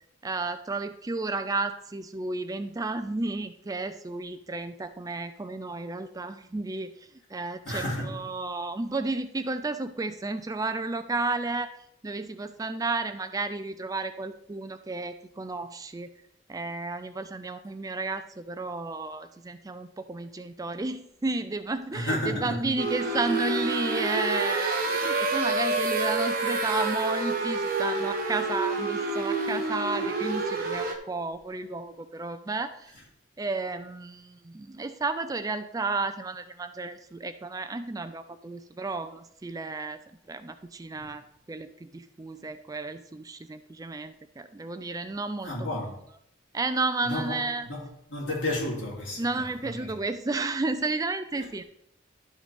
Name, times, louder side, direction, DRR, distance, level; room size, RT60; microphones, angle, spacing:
voice 1, 0.2-11.7 12.0-16.1 16.5-32.9 33.4-46.2 46.5-47.7 49.2-51.6, right 3 dB, 20° right, 0.4 m, -32 dB
voice 2, 7.7-8.2 21.9-22.6 40.9-41.1 45.4-46.0 47.0-47.4 47.7-47.8 48.1-49.5 49.8-49.9 51.4-51.5, left 1 dB, 70° left, 3.3 m, -31 dB
sound 1, 22.8-30.9, right 3 dB, 50° right, 1.2 m, -28 dB
11.5 x 6.3 x 3.6 m
head